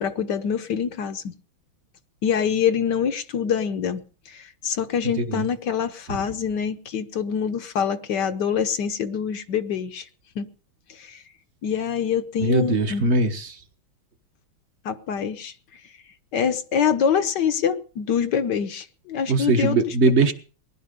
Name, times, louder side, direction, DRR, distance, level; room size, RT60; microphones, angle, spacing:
voice 1, 0.0-1.3 2.2-10.1 10.3-10.5 10.9-11.2 11.6-13.1 14.8-15.5 16.3-19.8, left 7 dB, 60° left, 1.5 m, -25 dB
voice 2, 12.4-13.6 19.3-20.3, right 3 dB, 40° right, 1.3 m, -21 dB
20.0 x 11.5 x 5.2 m
omnidirectional pair, 2.2 m